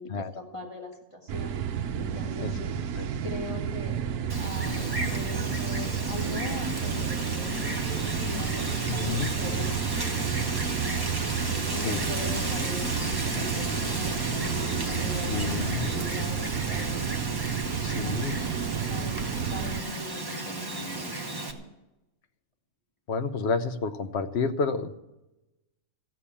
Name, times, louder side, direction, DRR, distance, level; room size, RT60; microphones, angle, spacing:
voice 1, 0.0-1.6 2.0-2.7 3.2-4.0 4.4-9.1 9.4-11.0 11.7-17.0 17.9-18.2 18.9-19.1 19.5-21.6, left 2 dB, 20° left, -1 dB, 1.9 m, -40 dB
sound 1, 1.3-19.8, right 8 dB, 80° right, 1.2 m, -31 dB
Wind, 4.3-21.5, right 2 dB, 15° right, 1.1 m, -34 dB
sound 2, 4.6-16.7, left 3 dB, 75° left, 2.8 m, -40 dB
voice 2, 8.9-9.3 11.8-12.0 15.3-15.9 17.8-18.4 23.1-25.0, left 4 dB, 55° left, 9 dB, 1.0 m, -30 dB
15.0 x 7.2 x 8.5 m, 0.97 s
omnidirectional pair, 1.6 m